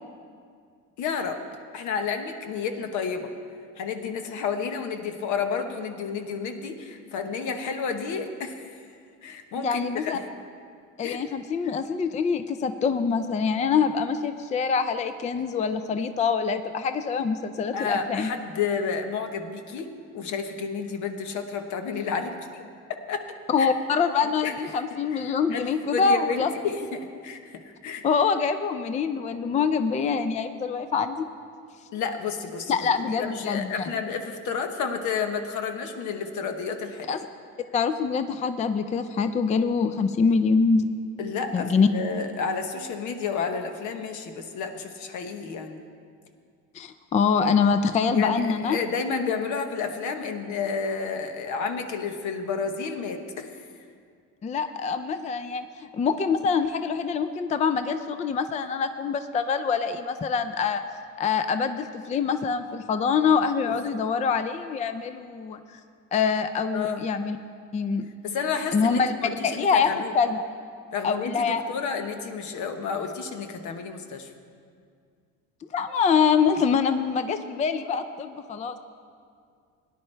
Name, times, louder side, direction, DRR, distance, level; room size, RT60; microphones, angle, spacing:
voice 1, 1.0-1.4 1.7-3.3 3.8-8.8 9.2-10.1 11.0-11.2 17.7-22.6 23.1-23.2 23.6-23.7 24.4-24.5 25.1-28.0 31.9-32.8 33.2-37.1 41.2-45.8 48.1-53.5 66.7-67.1 68.2-70.1 70.9-74.3, left 5 dB, 70° left, 6 dB, 1.1 m, -31 dB
voice 2, 9.6-10.2 11.0-18.3 23.5-26.5 28.0-31.2 32.7-33.9 37.1-37.2 37.7-40.8 41.5-41.9 46.7-48.8 54.4-60.8 61.2-65.6 66.1-67.4 67.7-68.1 68.7-70.4 71.0-71.6 75.7-78.8, left 5 dB, 25° left, 10 dB, 0.4 m, -25 dB
17.5 x 10.5 x 3.3 m, 2.2 s
cardioid pair, 110°, 31 cm